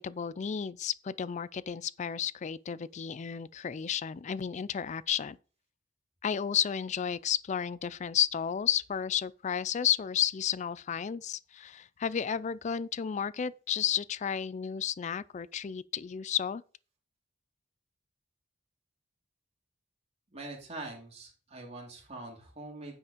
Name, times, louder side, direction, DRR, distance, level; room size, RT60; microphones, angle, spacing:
voice 1, 0.0-5.4 6.2-16.6, left 8 dB, 40° left, 0.3 m, -32 dB
voice 2, 20.3-23.0, right 2 dB, 35° right, 2.9 m, -44 dB
9.5 x 5.1 x 5.0 m
head